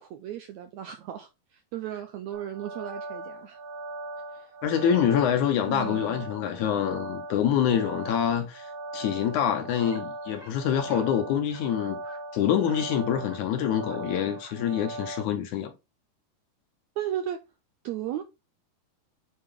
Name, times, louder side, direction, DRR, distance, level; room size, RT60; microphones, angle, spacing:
voice 1, 0.0-3.6 4.3-4.6 5.7-6.2 17.0-17.4 17.8-18.2, right 11 dB, 85° right, 1.6 m, -35 dB
sound 1, 2.3-15.2, right 2 dB, 65° right, 1.1 m, -39 dB
voice 2, 4.6-8.7 8.9-12.0 12.3-15.7, left 9 dB, 70° left, 2.0 m, -26 dB
sound 2, 9.8-10.0 10.3-10.5 10.8-11.1 11.4-11.6 12.0-12.2 12.6-12.8 13.2-13.4 13.7-14.0 14.2-14.6, right 2 dB, 20° right, 1.0 m, -50 dB
8.8 x 4.3 x 3.6 m
omnidirectional pair, 4.1 m